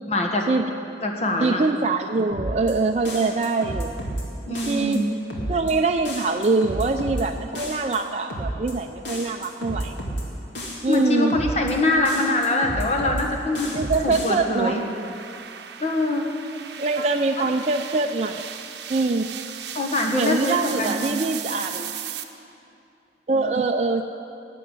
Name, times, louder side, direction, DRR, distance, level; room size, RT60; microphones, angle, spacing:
voice 1, 0.1-0.5 1.0-1.6 4.5-5.1 10.9-13.7 14.0-14.8 15.8-16.2 19.7-21.1, left 2 dB, 35° left, 2 dB, 1.4 m, -23 dB
voice 2, 1.4-3.9 4.5-5.0 5.5-10.0 10.8-11.4 13.7-14.8 16.8-18.4 18.9-19.3 20.1-21.9 23.3-24.1, right 3 dB, 35° right, 4 dB, 0.4 m, -24 dB
sound 1, 2.3-2.7 3.1-4.2 4.6-5.0 5.3-5.7 6.1-7.2 7.5-8.0 8.3-8.7 9.1-10.2 10.6-11.0 11.3-11.7 12.0-13.2 13.5-14.3, right 1 dB, 90° left, 2.4 m, -31 dB
sound 2, 10.2-22.2, right 9 dB, 70° right, 0.7 m, -38 dB
12.0 x 7.8 x 9.6 m, 2.8 s
head